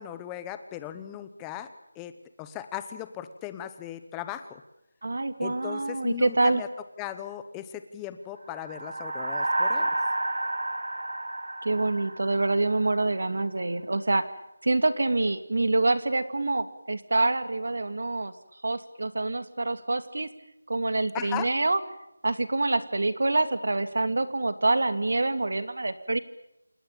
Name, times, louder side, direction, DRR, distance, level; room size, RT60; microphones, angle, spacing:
voice 1, 0.0-4.6 5.4-6.7 7.0-9.9 21.1-21.5, left 11 dB, 5° left, 11 dB, 0.9 m, -38 dB
voice 2, 5.0-6.6 11.6-14.2 14.6-18.3 18.6-20.3 20.7-21.8 22.2-26.2, right 2 dB, 60° right, 11 dB, 2.6 m, -26 dB
sound 1, 8.5-13.0, right 2 dB, 80° right, 5.3 m, -30 dB
28.0 x 19.5 x 8.9 m, 0.86 s
figure-of-eight pair, 175°, 0 cm